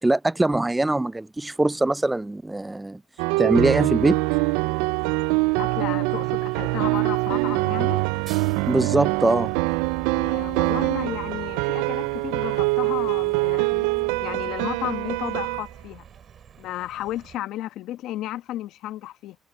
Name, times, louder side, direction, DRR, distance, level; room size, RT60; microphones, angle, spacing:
voice 1, 0.0-3.0 3.4-4.2 8.7-9.5, right 2 dB, 15° right, 0.4 m, -22 dB
sound 1, 3.2-15.7, right 24 dB, 90° right, 0.3 m, -24 dB
sound 2, 3.5-17.4, right 8 dB, 55° right, 5.6 m, -44 dB
voice 2, 5.6-8.0 10.1-16.0 16.6-19.4, left 14 dB, 75° left, 1.2 m, -33 dB
supercardioid pair, 65°, 0 cm